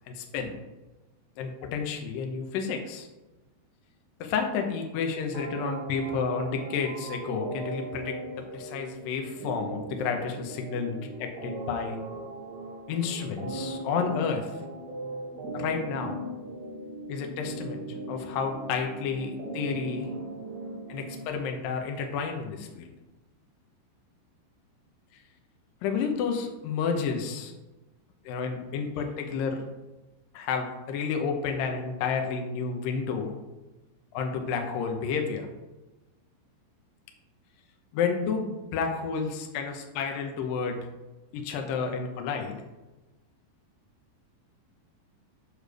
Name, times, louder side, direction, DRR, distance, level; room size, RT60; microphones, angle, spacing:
voice 1, 0.1-0.6 1.4-3.1 4.2-8.2 8.5-12.0 12.9-14.5 15.5-16.2 17.1-17.8 18.1-20.1 20.9-22.9 25.8-27.5 28.3-29.6 30.3-33.3 34.1-35.5 37.9-40.8 41.3-42.6, left 5 dB, 90° left, 4 dB, 2.0 m, -31 dB
sound 1, 5.3-21.3, right 2 dB, 65° right, 3.3 m, -38 dB
8.8 x 3.4 x 6.2 m, 1.1 s
omnidirectional pair, 5.3 m